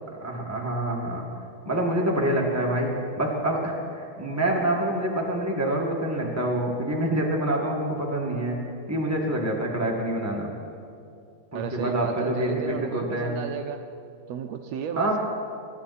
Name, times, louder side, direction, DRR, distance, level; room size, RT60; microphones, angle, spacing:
voice 1, 0.2-1.3 1.6-2.9 3.1-8.6 8.9-10.5 11.5-13.3 15.0-15.2, right 1 dB, 10° right, -2 dB, 0.8 m, -26 dB
voice 2, 11.5-13.8 14.3-15.2, right 7 dB, 80° right, 6 dB, 1.5 m, -33 dB
23.5 x 12.0 x 4.2 m, 2.5 s
omnidirectional pair, 3.6 m